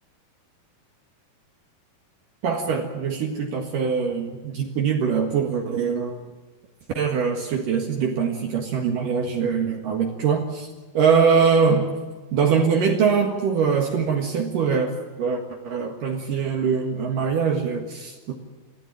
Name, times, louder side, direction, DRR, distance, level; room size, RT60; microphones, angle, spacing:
voice 1, 2.4-6.2 6.9-10.7 10.9-11.9 12.3-18.3, right 6 dB, 60° right, 3 dB, 3.1 m, -23 dB
24.0 x 16.0 x 9.2 m, 1.3 s
omnidirectional pair, 4.6 m